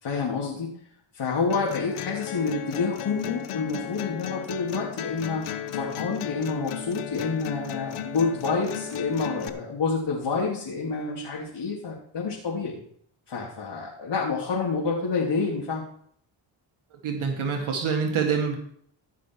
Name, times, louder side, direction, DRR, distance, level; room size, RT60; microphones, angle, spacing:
voice 1, 0.0-0.7 1.1-5.4 5.7-12.8 13.3-15.8, left 4 dB, 60° left, -4 dB, 3.2 m, -28 dB
sound 1, 1.5-9.5, left 10 dB, 90° left, 1.0 m, -35 dB
voice 2, 17.0-18.6, right 6 dB, 80° right, 2 dB, 1.9 m, -26 dB
15.5 x 6.1 x 4.8 m, 0.64 s
cardioid pair, 60°, 49 cm